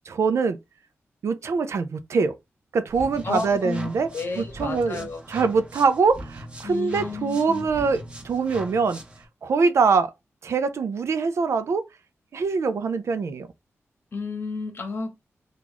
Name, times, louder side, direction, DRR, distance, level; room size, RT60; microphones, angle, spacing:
voice 1, 0.1-0.6 1.2-2.4 2.7-4.1 4.4-9.0 9.4-10.1 10.4-11.8 12.3-13.5, right 5 dB, 65° right, 0.5 m, -23 dB
sound 1, 2.9-9.2, right 1 dB, 20° right, 0.7 m, -40 dB
voice 2, 3.2-5.5 6.6-7.7 14.1-15.2, left 4 dB, 50° left, 0.9 m, -32 dB
2.9 x 2.4 x 3.8 m
wide cardioid pair, 130°, 5 cm